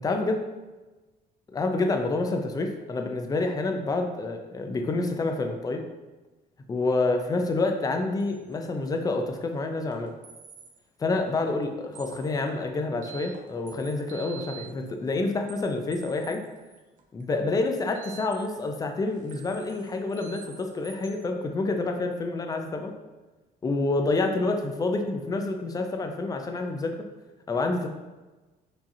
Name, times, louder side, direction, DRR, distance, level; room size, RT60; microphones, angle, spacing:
voice 1, 0.0-0.4 1.5-5.8 6.7-10.1 11.0-16.4 17.1-22.9 23.6-26.9 27.5-27.9, left 3 dB, 20° left, 4 dB, 0.5 m, -28 dB
sound 1, 8.2-8.6 8.8-8.9 9.3-9.4 9.9-10.8 11.1-11.2 11.6-11.7 11.9-18.7 19.1-21.1, right 7 dB, 50° right, 0.6 m, -48 dB
4.8 x 2.8 x 2.7 m, 1.2 s
cardioid pair, 110°, 17 cm